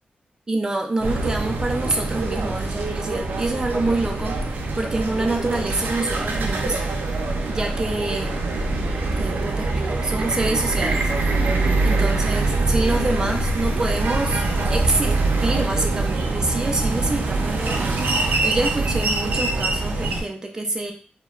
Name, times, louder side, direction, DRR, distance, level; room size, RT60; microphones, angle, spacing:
voice 1, 0.5-4.4 4.7-6.8 7.5-8.4 9.2-11.1 11.8-14.4 14.7-20.9, right 2 dB, 20° right, 2 dB, 0.3 m, -26 dB
sound 1, 1.0-20.2, right 2 dB, 85° right, 0.4 m, -24 dB
2.8 x 2.0 x 2.3 m, 0.44 s
wide cardioid pair, 145°, 3 cm